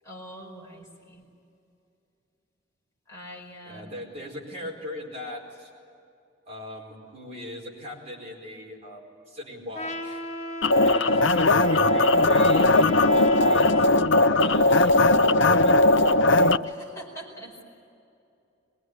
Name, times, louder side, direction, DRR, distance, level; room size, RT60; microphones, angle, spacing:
voice 1, 0.0-1.3 3.1-3.8 16.6-17.6, equal, 15° left, -2 dB, 5.0 m, -43 dB
voice 2, 3.7-5.7 6.5-10.2 10.8-13.9 14.4-15.8, left 1 dB, 35° right, -2 dB, 4.7 m, -39 dB
Trumpet, 9.7-14.0, left 1 dB, 35° left, 1.3 m, -35 dB
sound 1, 10.6-16.6, left 2 dB, 75° left, 0.7 m, -19 dB
23.0 x 22.5 x 9.8 m, 2.6 s
head